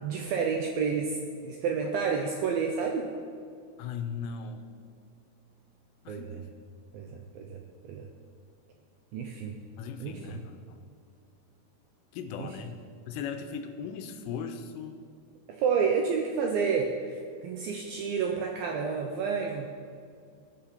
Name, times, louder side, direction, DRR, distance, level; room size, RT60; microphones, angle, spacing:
voice 1, 0.0-1.2 1.4-3.1 6.1-6.4 6.9-8.1 9.1-9.6 10.0-10.4 12.4-12.6 15.5-19.7, right 5 dB, 80° right, 3 dB, 2.1 m, -30 dB
voice 2, 3.8-4.6 6.1-6.3 9.8-10.8 12.1-12.8 13.1-15.0, left 6 dB, 90° left, 7 dB, 2.8 m, -38 dB
18.5 x 6.4 x 4.3 m, 2.3 s
omnidirectional pair, 5.0 m